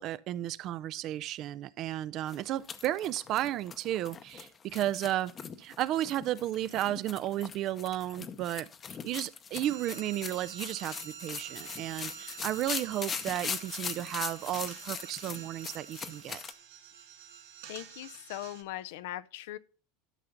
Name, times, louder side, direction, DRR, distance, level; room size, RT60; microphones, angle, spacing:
voice 1, 0.0-8.7 9.0-16.4, right 13 dB, 50° right, 0.4 m, -33 dB
sound 1, 2.3-16.5, left 6 dB, 30° left, 0.7 m, -41 dB
sound 2, 9.6-18.6, right 8 dB, 85° right, 1.3 m, -48 dB
voice 2, 17.7-19.6, left 14 dB, 75° left, 0.5 m, -40 dB
12.5 x 5.7 x 3.9 m
supercardioid pair, 105°, 0 cm